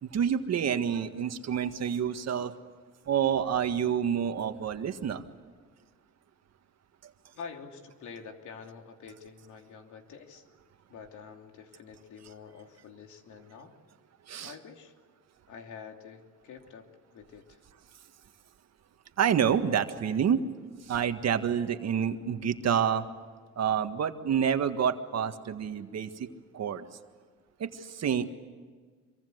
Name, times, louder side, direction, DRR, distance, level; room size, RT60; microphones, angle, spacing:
voice 1, 0.0-2.5 3.1-5.2 14.3-14.5 19.2-20.4 20.9-23.1 23.6-26.3 26.5-26.9 27.6-28.3, right 8 dB, 60° right, 8 dB, 1.8 m, -28 dB
voice 2, 7.3-10.4 10.9-13.7 14.4-14.9 15.5-17.6, left 6 dB, 80° left, 4 dB, 3.0 m, -47 dB
25.5 x 23.5 x 8.0 m, 1.5 s
cardioid pair, 90°, 30 cm